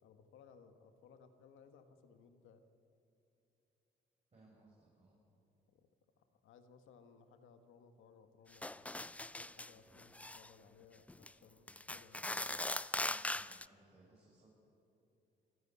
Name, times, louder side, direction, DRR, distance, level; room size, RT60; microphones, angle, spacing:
voice 1, 0.0-2.6 5.7-5.9 6.2-8.7 9.3-12.2, left 6 dB, 85° left, 8 dB, 1.4 m, -62 dB
voice 2, 4.3-5.2 13.0-14.5, right 2 dB, 35° right, -6 dB, 7.0 m, -65 dB
sound 1, 8.6-9.7 10.0-10.5 11.1-11.3 11.7-13.6, left 2 dB, 5° left, 0.4 m, -40 dB
26.5 x 11.0 x 9.7 m, 2.9 s
cardioid pair, 90°, 20 cm